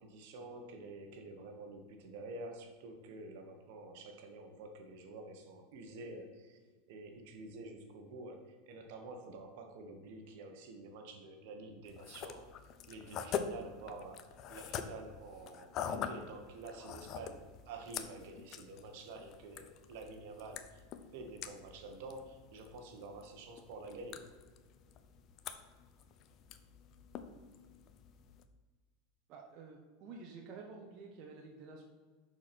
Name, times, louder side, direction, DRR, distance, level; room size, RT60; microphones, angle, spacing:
voice 1, 0.0-6.6 6.9-12.5 12.9-14.2 14.5-20.8 21.1-24.3, right 2 dB, 70° right, 5 dB, 1.3 m, -49 dB
sound 1, 11.9-28.4, left 7 dB, 45° left, 0.6 m, -45 dB
voice 2, 29.3-31.8, right 4 dB, 50° right, 1 dB, 1.0 m, -50 dB
6.3 x 4.7 x 6.0 m, 1.5 s
supercardioid pair, 115°, 0 cm